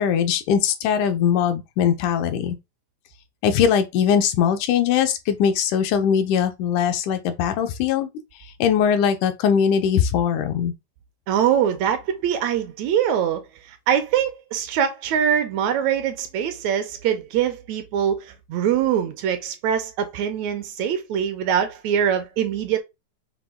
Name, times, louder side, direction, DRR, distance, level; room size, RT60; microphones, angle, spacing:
voice 1, 0.0-2.6 3.4-8.1 8.6-10.7, left 8 dB, 90° left, 2.2 m, -21 dB
voice 2, 11.3-22.8, right 9 dB, 75° right, 1.8 m, -23 dB
5.8 x 2.2 x 3.6 m
omnidirectional pair, 3.4 m